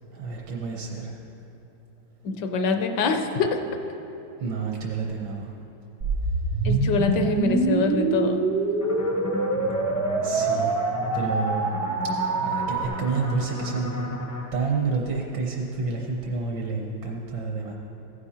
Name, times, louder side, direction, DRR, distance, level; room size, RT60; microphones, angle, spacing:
voice 1, 0.1-1.1 4.4-5.5 10.2-10.8 11.1-11.7 12.4-14.0 14.5-17.7, right 4 dB, 70° right, 0 dB, 1.5 m, -29 dB
voice 2, 2.2-3.6 6.6-8.4, left 4 dB, 70° left, 6 dB, 1.2 m, -24 dB
sound 1, 6.0-12.9, right 3 dB, 85° right, 0.5 m, -25 dB
sound 2, 8.8-14.4, left 1 dB, 25° left, 0.3 m, -34 dB
15.0 x 9.7 x 2.9 m, 3.0 s
omnidirectional pair, 2.1 m